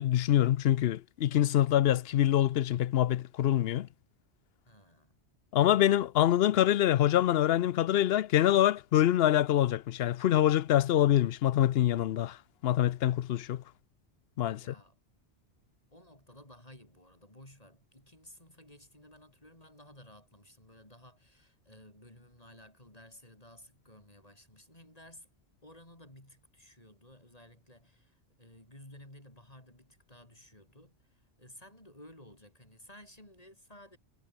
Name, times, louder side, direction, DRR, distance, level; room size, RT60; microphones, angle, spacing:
voice 1, 0.0-3.9 5.5-12.4 12.6-13.6 14.4-14.6, left 12 dB, 70° left, 0.8 m, -25 dB
voice 2, 4.7-5.2 14.4-15.0 15.9-25.3 25.6-34.0, left 1 dB, 35° left, 6.2 m, -55 dB
omnidirectional pair, 1.1 m